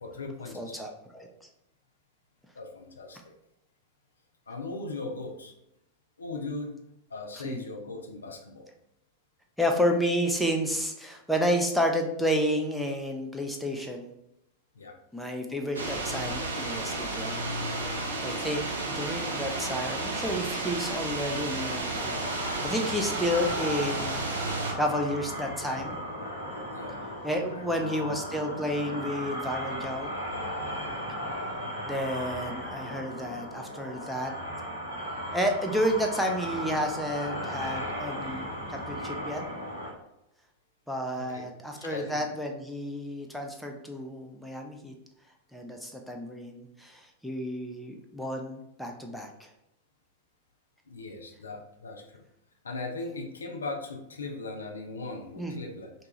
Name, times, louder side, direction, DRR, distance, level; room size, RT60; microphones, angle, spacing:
voice 1, 0.0-0.8 2.6-3.3 4.5-5.5 6.2-6.8 7.1-8.7 14.8-15.0 24.0-24.1 26.7-27.0 27.5-28.0 41.2-41.5 41.8-42.3 50.9-52.2 52.6-55.9, left 3 dB, 75° left, 2 dB, 0.4 m, -39 dB
voice 2, 0.5-1.3 7.4-7.6 9.6-14.1 15.1-17.4 17.7-22.1 22.5-24.3 24.8-26.0 27.2-30.1 31.9-34.3 35.3-39.4 40.9-44.9 45.5-49.5 55.4-55.5, equal, ahead, 1 dB, 0.4 m, -31 dB
sound 1, 15.7-24.7, right 2 dB, 70° right, 0.4 m, -32 dB
sound 2, 21.9-39.9, equal, 90° right, 1.2 m, -36 dB
2.7 x 2.2 x 2.9 m, 0.82 s
figure-of-eight pair, 90°, 0 cm